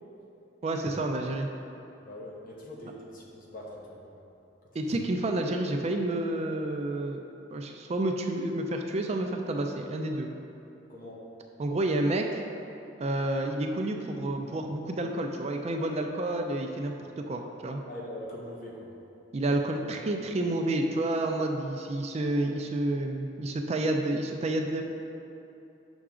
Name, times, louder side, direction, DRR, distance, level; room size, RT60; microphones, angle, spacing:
voice 1, 0.6-1.5 4.7-7.2 7.5-10.3 11.6-12.4 13.0-17.8 19.3-24.8, right 1 dB, 35° right, 3 dB, 0.4 m, -29 dB
voice 2, 2.0-4.1 10.9-11.2 17.9-18.9, left 1 dB, 50° left, -2 dB, 1.0 m, -42 dB
6.1 x 5.7 x 3.7 m, 2.8 s
head